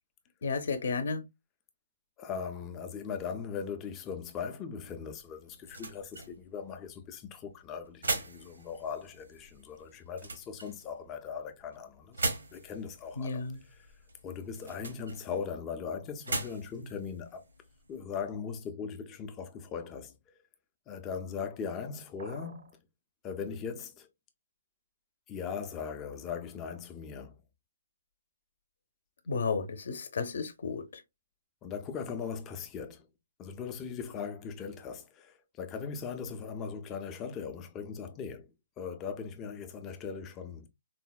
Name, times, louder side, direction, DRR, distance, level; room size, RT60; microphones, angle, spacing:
voice 1, 0.4-1.2 13.2-13.6 29.3-31.0, left 4 dB, 60° left, 0.6 m, -33 dB
voice 2, 2.2-13.4 14.2-17.4 17.9-20.3 20.9-22.7 23.2-24.1 25.3-27.4 31.6-33.1 33.4-40.7, left 6 dB, 15° left, 0.4 m, -39 dB
sound 1, 4.8-18.3, right 3 dB, 85° right, 1.0 m, -41 dB
sound 2, 22.2-22.8, right 4 dB, 65° right, 0.6 m, -49 dB
3.9 x 2.1 x 2.3 m
hypercardioid pair, 165°, 0 cm